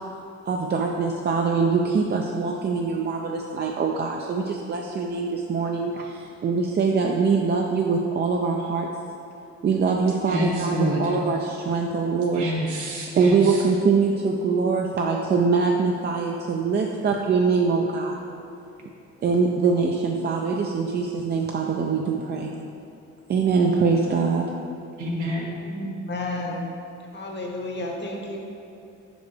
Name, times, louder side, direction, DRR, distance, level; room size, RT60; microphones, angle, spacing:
voice 1, 0.5-8.9 9.6-12.5 13.1-18.2 19.2-22.6 23.3-24.5, right 4 dB, 35° right, 1 dB, 0.4 m, -23 dB
voice 2, 10.3-11.1 12.3-13.6 25.0-25.5, equal, 90° right, -2 dB, 1.2 m, -28 dB
voice 3, 25.6-26.7 27.1-28.4, left 1 dB, 35° left, 0 dB, 0.9 m, -31 dB
5.6 x 5.2 x 3.2 m, 2.7 s
cardioid pair, 90°, 30 cm